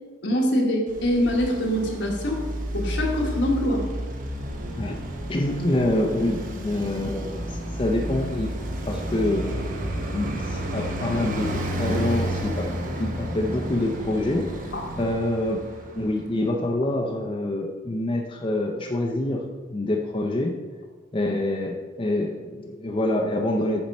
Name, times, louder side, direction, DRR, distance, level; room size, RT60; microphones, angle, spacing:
voice 1, 0.2-2.4 2.7-3.9 13.5-13.6 14.7-14.8, equal, 70° left, 0 dB, 1.3 m, -24 dB
Traffic noise roadway noise, 0.9-16.3, right 1 dB, 50° right, 0.9 m, -32 dB
sound 1, 4.4-15.1, equal, 75° right, 1.2 m, -37 dB
voice 2, 5.3-8.5 8.8-9.7 10.1-14.5 15.0-15.6 15.9-19.4 19.7-20.5 21.1-23.8, left 1 dB, 30° left, 0 dB, 0.6 m, -26 dB
7.2 x 4.3 x 5.3 m, 1.4 s
head